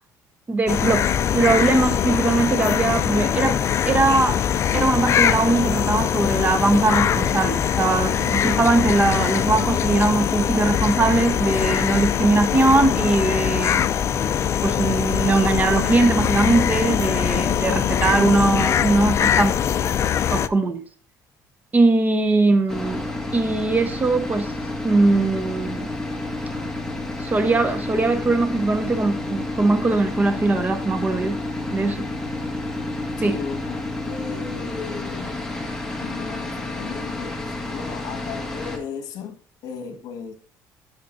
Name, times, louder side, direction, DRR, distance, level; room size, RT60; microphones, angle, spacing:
voice 1, 0.5-4.4 4.7-13.8 14.6-19.6 20.3-20.8 21.7-23.0 23.3-24.5 24.8-25.9 27.2-31.4 31.7-32.1 33.2-33.4, right 3 dB, 25° right, 1.1 m, -20 dB
sound 1, 0.7-20.5, left 9 dB, 40° left, 0.4 m, -22 dB
sound 2, 22.7-38.8, left 2 dB, 5° left, 1.8 m, -30 dB
voice 2, 33.2-35.5 36.0-40.3, left 6 dB, 70° left, 1.7 m, -36 dB
12.0 x 6.4 x 2.7 m
cardioid pair, 125°, 7 cm